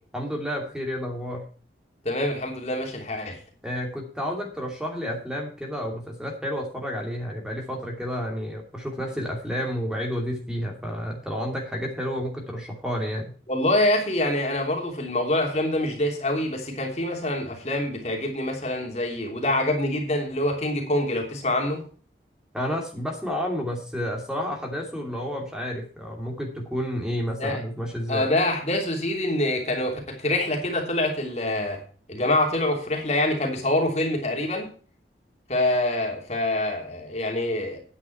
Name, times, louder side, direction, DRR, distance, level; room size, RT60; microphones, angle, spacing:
voice 1, 0.1-1.4 3.6-13.3 22.5-28.3, equal, 5° right, 0 dB, 2.7 m, -30 dB
voice 2, 2.0-3.4 13.5-21.8 27.4-27.6 28.1-31.8 32.1-34.7 35.5-37.8, left 1 dB, 40° left, 2 dB, 3.1 m, -25 dB
10.0 x 9.6 x 4.5 m, 0.40 s
head